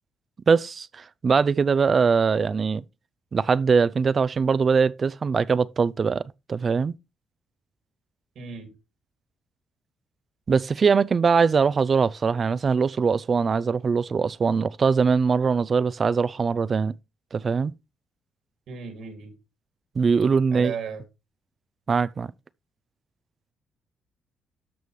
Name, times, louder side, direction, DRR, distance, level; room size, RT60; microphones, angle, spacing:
voice 1, 0.5-2.8 3.3-6.9 10.5-16.9 17.3-17.7 20.0-20.7 21.9-22.3, right 5 dB, 40° right, 0.4 m, -22 dB
voice 2, 8.4-8.7 18.7-19.3 20.5-21.0, right 6 dB, 75° right, 2.3 m, -35 dB
13.0 x 5.4 x 3.2 m
cardioid pair, 90°, 0 cm